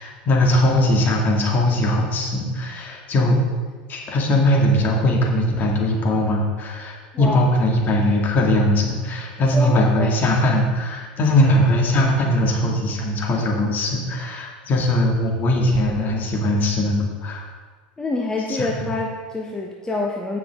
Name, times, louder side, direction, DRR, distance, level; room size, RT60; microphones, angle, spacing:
voice 1, 0.0-3.4 3.9-17.5 18.5-18.9, left 1 dB, 40° left, -1 dB, 2.3 m, -20 dB
voice 2, 7.1-7.4 9.5-10.2 18.0-20.4, left 2 dB, 15° left, -1 dB, 1.0 m, -26 dB
15.0 x 6.0 x 3.7 m, 1.5 s
hypercardioid pair, 95°, 5 cm